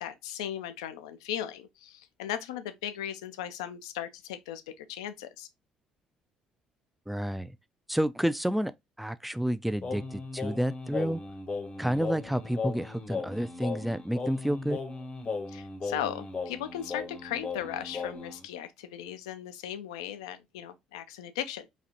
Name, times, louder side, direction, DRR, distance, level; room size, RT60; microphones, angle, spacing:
voice 1, 0.0-5.5 15.5-21.7, left 10 dB, 85° left, 0.4 m, -37 dB
voice 2, 7.1-7.6 7.9-8.7 9.0-11.2 11.8-14.8, equal, 5° right, 0.3 m, -30 dB
Singing, 9.8-18.4, left 4 dB, 40° left, 0.7 m, -37 dB
4.0 x 2.4 x 2.7 m
hypercardioid pair, 55°, 3 cm